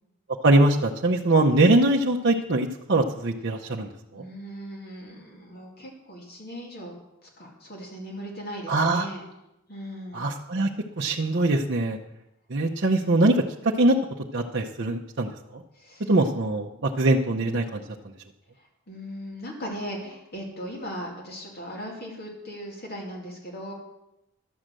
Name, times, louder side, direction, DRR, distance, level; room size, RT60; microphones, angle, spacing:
voice 1, 0.4-3.9 4.1-4.2 8.7-9.1 10.1-10.7 11.0-12.0 12.5-13.4 13.6-14.0 14.3-15.6 16.1-17.8, right 2 dB, 55° right, -1 dB, 0.7 m, -22 dB
voice 2, 4.1-6.9 7.2-9.2 9.7-10.2 15.7-16.1 18.6-23.7, equal, 50° left, -1 dB, 2.4 m, -38 dB
12.0 x 6.6 x 7.5 m, 0.89 s
head